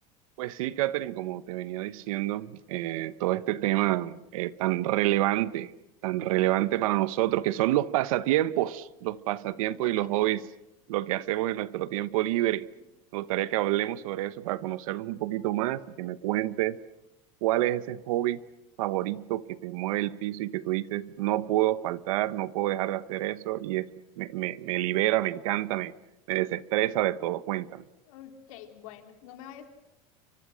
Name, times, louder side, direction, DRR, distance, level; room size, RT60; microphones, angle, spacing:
voice 1, 0.4-5.7 6.0-10.4 10.9-12.7 13.1-16.8 17.4-18.4 18.8-23.9 24.2-25.9 26.3-27.8, right 15 dB, 85° right, 1.1 m, -28 dB
voice 2, 9.7-10.3 28.1-29.7, left 10 dB, 80° left, 3.5 m, -47 dB
30.0 x 24.5 x 6.4 m
supercardioid pair, 140°, 17 cm